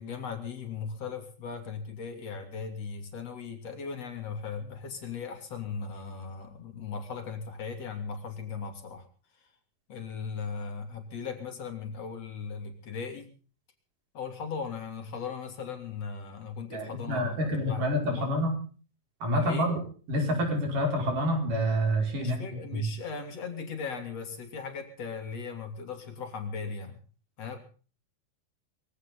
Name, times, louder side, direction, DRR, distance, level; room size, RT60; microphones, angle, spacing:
voice 1, 0.0-9.1 9.9-13.3 14.1-18.3 19.3-19.7 22.2-27.0 27.4-27.6, left 5 dB, 45° left, 6 dB, 3.8 m, -38 dB
voice 2, 16.7-18.6 19.2-19.8 20.1-22.4 22.7-22.8, equal, 60° right, 2 dB, 7.0 m, -27 dB
22.0 x 16.0 x 3.8 m, 0.40 s
omnidirectional pair, 4.1 m